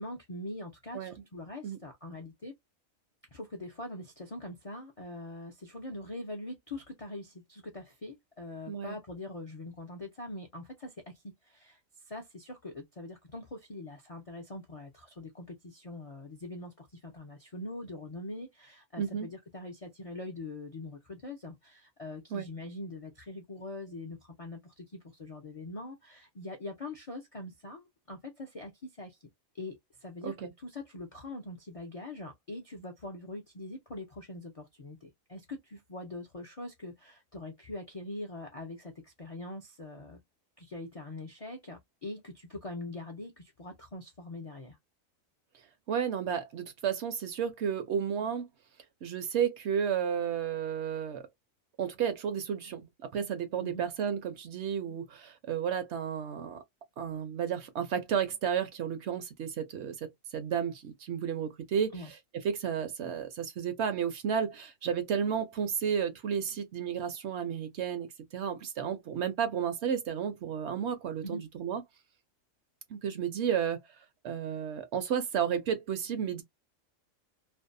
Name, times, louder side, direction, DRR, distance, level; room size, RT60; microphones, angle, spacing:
voice 1, 0.0-2.5 3.3-11.8 12.1-29.2 29.5-40.2 40.6-44.8 53.6-53.8 61.9-62.1 71.2-71.4, left 2 dB, 50° left, 0.4 m, -43 dB
voice 2, 19.0-19.3 22.3-22.5 30.2-30.5 45.9-48.5 49.0-51.2 51.8-52.9 53.1-56.6 57.0-61.9 62.4-68.1 68.3-71.8 72.9-73.8 74.2-76.4, right 8 dB, 65° right, 0.8 m, -32 dB
2.6 x 2.1 x 2.5 m
omnidirectional pair, 1.4 m